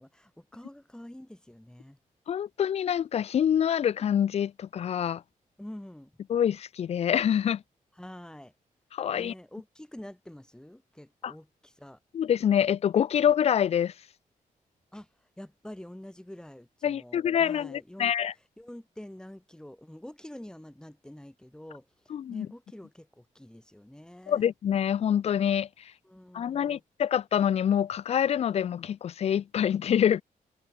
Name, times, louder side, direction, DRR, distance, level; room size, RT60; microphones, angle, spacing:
voice 1, 0.0-2.0 5.6-6.1 8.0-8.5 9.1-12.0 14.9-15.1 15.4-18.1 18.6-21.9 22.3-24.5 26.0-26.8, left 1 dB, 5° left, 3.9 m, -46 dB
voice 2, 2.3-5.2 6.3-7.6 8.9-9.3 11.2-11.3 12.1-13.9 16.8-18.3 22.1-22.5 24.3-25.7 26.3-30.2, left 9 dB, 50° left, 0.4 m, -26 dB
wide cardioid pair, 135°, 14 cm